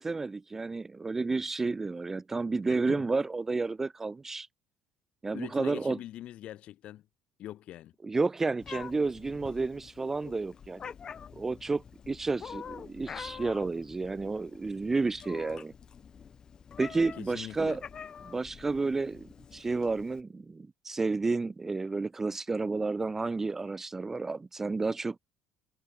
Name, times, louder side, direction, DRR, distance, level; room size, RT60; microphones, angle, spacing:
voice 1, 0.0-4.5 5.2-6.0 8.0-10.9 11.4-15.7 16.8-17.8 18.2-25.2, right 3 dB, 15° right, 0.4 m, -31 dB
voice 2, 2.7-3.1 5.3-7.1 7.4-7.9 17.2-17.8, left 13 dB, 55° left, 5.7 m, -43 dB
Meow, 8.6-20.2, left 7 dB, 35° left, 1.8 m, -46 dB
cardioid pair, 130°, 2 cm